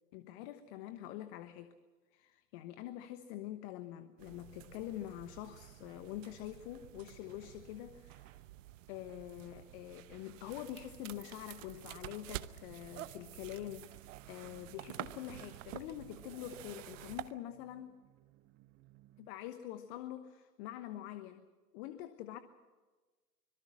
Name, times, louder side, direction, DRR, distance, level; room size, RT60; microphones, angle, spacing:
voice 1, 0.1-1.7 2.1-8.4 8.9-18.0 19.2-21.5 21.7-22.4, left 13 dB, 40° left, 10 dB, 1.2 m, -45 dB
sound 1, 4.2-17.3, right 14 dB, 50° right, 1.0 m, -49 dB
sound 2, 12.6-19.3, right 15 dB, 25° right, 1.2 m, -63 dB
25.0 x 22.5 x 6.3 m, 1.3 s
hypercardioid pair, 110°, 50 cm